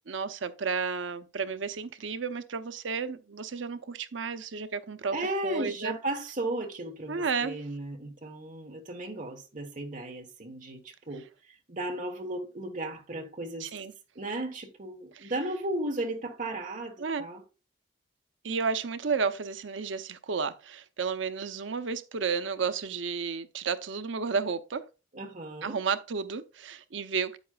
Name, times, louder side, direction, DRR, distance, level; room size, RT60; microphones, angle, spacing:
voice 1, 0.1-5.2 5.4-6.0 7.1-7.6 13.6-13.9 15.2-15.3 17.0-17.3 18.4-24.9 25.6-27.4, right 5 dB, 75° right, 0.7 m, -32 dB
voice 2, 5.1-13.7 14.1-17.4 25.1-25.8, right 2 dB, 40° right, 1.3 m, -35 dB
8.9 x 8.1 x 2.3 m
head